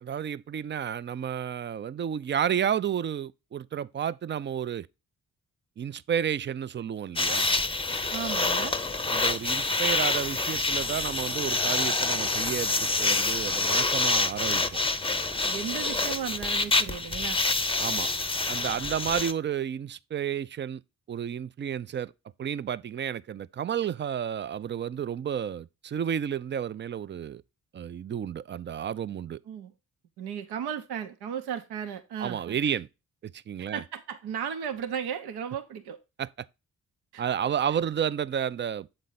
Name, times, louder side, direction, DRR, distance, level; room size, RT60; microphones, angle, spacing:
voice 1, 0.0-4.9 5.8-7.5 9.1-14.8 17.8-18.1 18.5-20.8 21.1-22.1 22.4-27.4 27.7-29.4 32.2-32.9 33.2-33.8 36.2-36.3 37.2-38.9, right 8 dB, 30° right, 0.4 m, -31 dB
sound 1, 7.2-19.3, left 3 dB, 15° left, 0.6 m, -27 dB
voice 2, 8.1-8.8 15.4-17.5 29.5-29.7 30.2-32.8 33.7-36.0 37.1-37.2, right 8 dB, 70° right, 0.8 m, -35 dB
7.7 x 4.0 x 3.9 m
hypercardioid pair, 40°, 40 cm